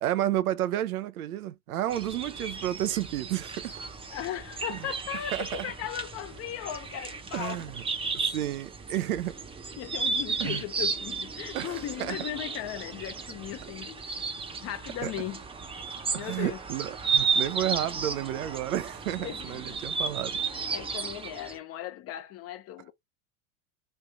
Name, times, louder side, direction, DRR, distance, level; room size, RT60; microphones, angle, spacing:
voice 1, 0.0-3.8 4.7-4.8 5.3-5.7 7.3-7.8 8.3-9.3 10.4-10.6 11.5-11.8 12.1-12.2 15.0-15.1 16.1-20.4, right 12 dB, 80° right, 0.6 m, -31 dB
sound 1, 1.9-21.6, right 5 dB, 15° right, 0.7 m, -34 dB
voice 2, 4.1-7.6 9.8-14.1 14.6-15.4 16.1-16.6 19.2-19.8 20.7-22.9, left 12 dB, 35° left, 0.7 m, -37 dB
3.3 x 2.6 x 3.3 m
hypercardioid pair, 105°, 44 cm